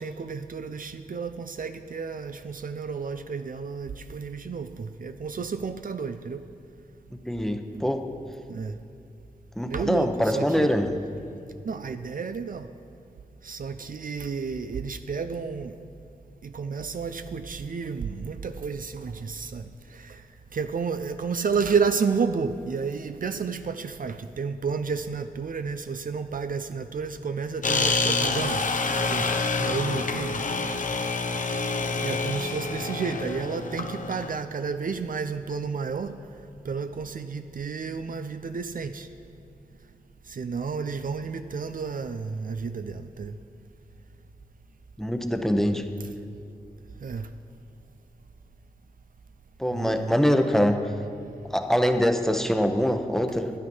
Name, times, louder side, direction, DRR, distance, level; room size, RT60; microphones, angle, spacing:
voice 1, 0.0-6.5 8.5-8.8 9.7-10.7 11.6-12.7 13.4-15.8 16.4-20.2 20.5-28.7 29.0-29.3 29.6-30.4 32.0-36.2 36.6-39.1 40.3-43.4 47.0-47.3 49.7-50.1, right 5 dB, 60° right, 9 dB, 0.5 m, -31 dB
voice 2, 7.1-8.0 9.6-10.9 45.0-45.9 49.6-50.9 51.5-53.5, equal, ahead, 6 dB, 0.9 m, -24 dB
sound 1, 27.6-34.3, left 3 dB, 55° left, 0.9 m, -27 dB
12.0 x 9.5 x 5.5 m, 2.5 s
cardioid pair, 45°, 16 cm